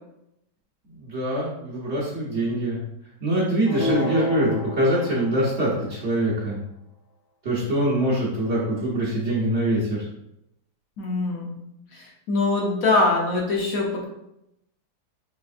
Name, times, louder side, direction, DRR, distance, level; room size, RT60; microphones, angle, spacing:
voice 1, 0.9-2.8 3.2-6.6 7.4-10.1, right 1 dB, 50° right, -6 dB, 1.0 m, -24 dB
sound 1, 3.7-5.7, left 2 dB, 45° left, 0.7 m, -29 dB
voice 2, 11.0-11.6 11.9-14.1, left 3 dB, 65° left, -2 dB, 1.0 m, -23 dB
4.2 x 3.1 x 2.4 m, 0.82 s
omnidirectional pair, 1.8 m